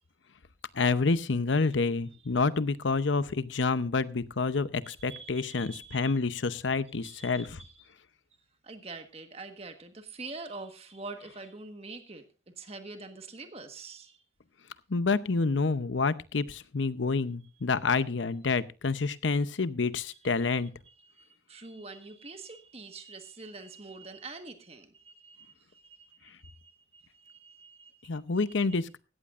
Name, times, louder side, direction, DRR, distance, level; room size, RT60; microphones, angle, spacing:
voice 1, 0.7-7.6 14.9-20.7 28.1-29.0, left 4 dB, 85° left, 15 dB, 0.8 m, -28 dB
voice 2, 4.8-6.2 7.0-7.7 8.6-12.2 12.6-14.2 20.1-20.5 20.9-28.2, right 3 dB, 35° right, 7 dB, 1.4 m, -46 dB
17.0 x 14.0 x 2.5 m, 0.32 s
head